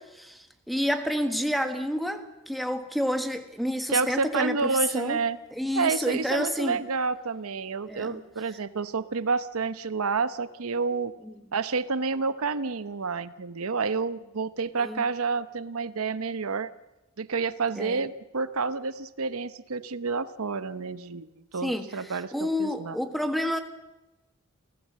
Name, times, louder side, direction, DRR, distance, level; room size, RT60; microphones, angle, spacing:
voice 1, 0.0-5.2 5.6-6.8 7.9-8.2 11.2-11.3 14.8-15.0 17.8-18.0 21.6-21.9 22.3-23.6, equal, ahead, 7 dB, 1.3 m, -29 dB
voice 2, 3.9-5.4 5.7-11.1 11.5-16.7 17.2-23.0, right 4 dB, 90° right, 14 dB, 0.8 m, -29 dB
29.0 x 15.5 x 7.5 m, 1.0 s
head